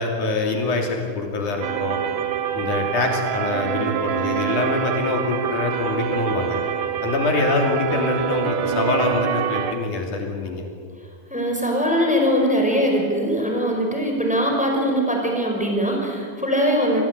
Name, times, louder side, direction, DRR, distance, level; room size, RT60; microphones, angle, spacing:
voice 1, 0.0-2.0 2.6-6.6 7.0-10.7, left 3 dB, 70° left, 1 dB, 4.4 m, -24 dB
sound 1, 1.6-9.7, right 9 dB, 85° right, 2.7 m, -26 dB
voice 2, 11.3-17.0, equal, ahead, 1 dB, 5.2 m, -21 dB
28.0 x 21.0 x 8.5 m, 2.2 s
omnidirectional pair, 3.6 m